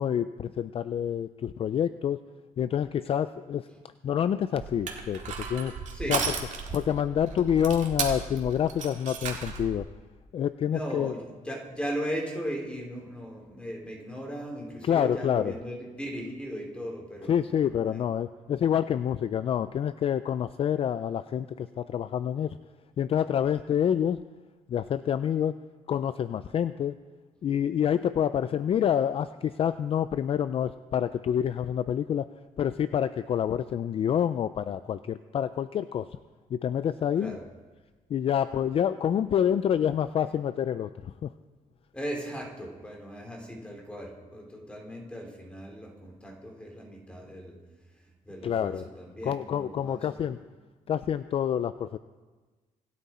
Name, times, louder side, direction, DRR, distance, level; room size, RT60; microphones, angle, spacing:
voice 1, 0.0-2.2 2.6-3.7 4.0-5.2 5.5-5.8 6.1-6.2 6.7-9.9 10.3-11.1 14.8-15.5 17.3-22.6 23.0-24.2 24.7-25.6 25.9-26.9 27.4-32.3 32.6-36.1 36.5-37.4 38.1-41.3 48.4-48.8 49.2-50.4 50.9-52.0, left 9 dB, 45° left, 13 dB, 0.4 m, -27 dB
Crushing, 4.6-9.8, right 6 dB, 60° right, 2.1 m, -35 dB
voice 2, 5.9-6.2 10.6-18.0 37.2-37.4 41.9-47.6 47.9-50.3, equal, 10° left, 0 dB, 3.0 m, -37 dB
26.0 x 9.3 x 4.3 m, 1.3 s
cardioid pair, 150°, 14 cm